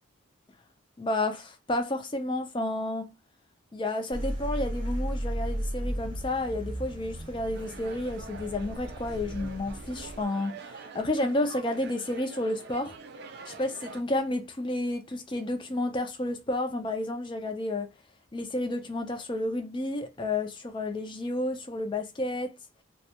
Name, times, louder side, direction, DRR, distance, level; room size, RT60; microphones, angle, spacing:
voice 1, 1.0-3.1 3.7-12.9 13.5-17.9 18.3-22.6, left 1 dB, 25° left, 0.4 m, -31 dB
sound 1, 4.1-10.2, equal, 25° right, 0.8 m, -35 dB
sound 2, 7.5-14.0, right 4 dB, 50° right, 0.4 m, -45 dB
2.3 x 2.1 x 2.8 m
head